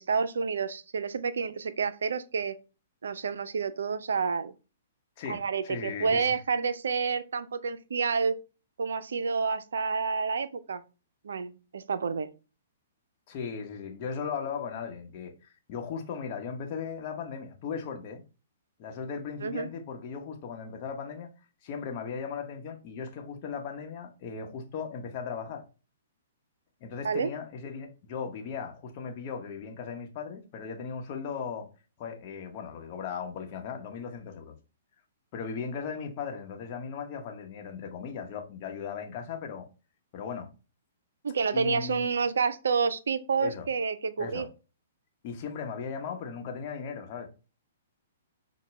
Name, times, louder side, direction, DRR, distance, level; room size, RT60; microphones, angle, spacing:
voice 1, 0.0-2.6 3.0-4.5 5.3-8.4 8.8-10.8 11.2-12.3 19.4-19.7 27.0-27.3 41.2-44.5, right 5 dB, 80° right, 0.4 m, -29 dB
voice 2, 5.2-6.4 13.3-18.2 18.8-21.3 21.6-25.6 26.8-31.7 32.0-34.5 35.3-39.7 40.1-40.5 41.5-42.1 43.4-43.7 44.2-44.5 45.2-47.3, left 6 dB, 45° left, 0.9 m, -37 dB
5.7 x 2.2 x 3.1 m
hypercardioid pair, 130°, 0 cm